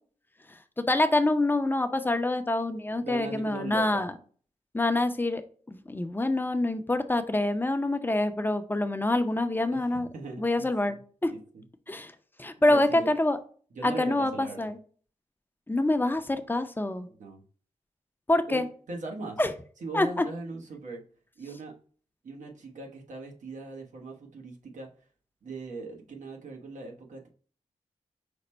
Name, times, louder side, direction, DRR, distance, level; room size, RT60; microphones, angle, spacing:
voice 1, 0.8-4.1 4.7-5.4 5.7-10.1 10.4-11.0 11.2-11.3 11.9-12.1 12.4-13.4 13.8-14.8 15.7-17.1 18.3-18.6 19.4-19.5 19.9-20.3, left 2 dB, 15° left, 9 dB, 0.5 m, -26 dB
voice 2, 3.1-4.0 9.7-11.0 11.3-11.6 12.7-13.1 13.7-14.7 17.1-17.4 18.5-19.4 19.8-21.0 21.4-21.7 22.2-24.9 25.4-27.3, right 3 dB, 80° right, 1 dB, 1.0 m, -40 dB
5.1 x 2.1 x 4.2 m, 0.43 s
cardioid pair, 70°, 13 cm